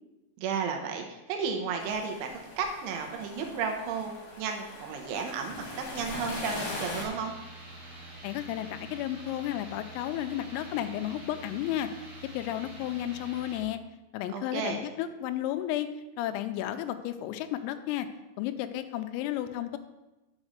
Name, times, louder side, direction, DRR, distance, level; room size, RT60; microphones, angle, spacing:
voice 1, 0.4-5.6 5.9-7.3 14.3-14.9, right 5 dB, 80° right, 3 dB, 3.1 m, -33 dB
sound 1, 1.8-7.1, left 2 dB, 50° left, 3.1 m, -41 dB
sound 2, 6.7-13.6, right 1 dB, 40° right, 2.1 m, -46 dB
voice 2, 8.2-11.9 12.3-13.8 14.1-15.9 16.2-18.1 18.4-19.8, left 12 dB, 90° left, 9 dB, 3.3 m, -33 dB
7.3 x 5.2 x 6.4 m, 1.0 s
omnidirectional pair, 5.9 m